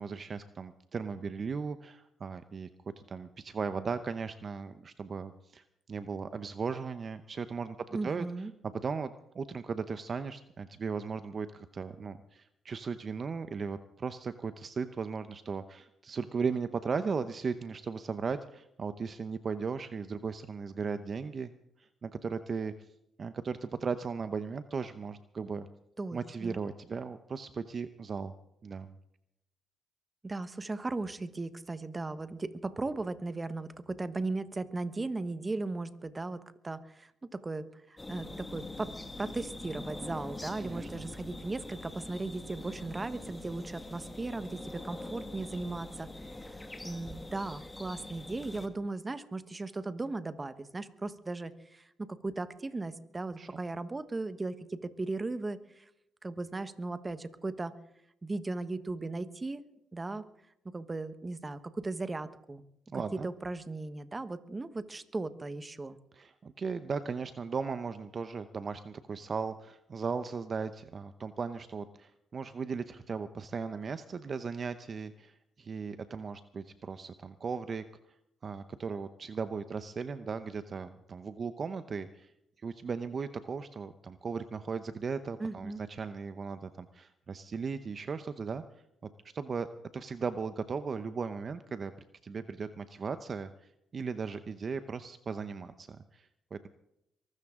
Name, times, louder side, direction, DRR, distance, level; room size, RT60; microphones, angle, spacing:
voice 1, 0.0-2.7 3.1-5.6 5.9-8.2 8.6-21.5 21.8-22.7 23.2-25.7 26.1-28.3 28.6-28.9 40.6-40.9 53.4-53.6 62.9-63.3 66.1-77.8 78.4-82.3 82.6-88.6 89.0-89.7 89.9-91.9 92.2-96.7, right 5 dB, 40° right, 11 dB, 0.8 m, -37 dB
voice 2, 7.9-8.5 26.0-26.6 30.2-38.9 39.2-55.9 56.2-57.7 58.2-59.6 59.9-60.2 60.7-62.6 62.9-66.0 85.4-85.8, right 2 dB, 25° right, 12 dB, 1.2 m, -37 dB
sound 1, 38.0-48.7, left 2 dB, 15° left, 1.9 m, -44 dB
23.0 x 13.0 x 3.7 m, 0.80 s
cardioid pair, 90°, 0 cm